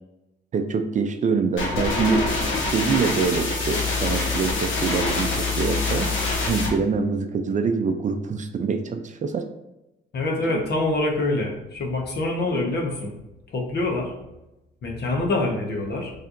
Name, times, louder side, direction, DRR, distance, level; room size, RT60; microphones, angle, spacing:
voice 1, 0.5-2.3 2.7-6.1 6.4-9.5 10.4-10.5 12.5-12.6, right 5 dB, 40° right, 7 dB, 0.4 m, -25 dB
sound 1, 1.6-6.7, left 3 dB, 80° left, 1.2 m, -25 dB
voice 2, 10.1-13.1 13.5-14.1 14.8-16.1, left 2 dB, 55° left, 1 dB, 1.1 m, -25 dB
4.3 x 3.3 x 2.5 m, 0.94 s
cardioid pair, 90°, 20 cm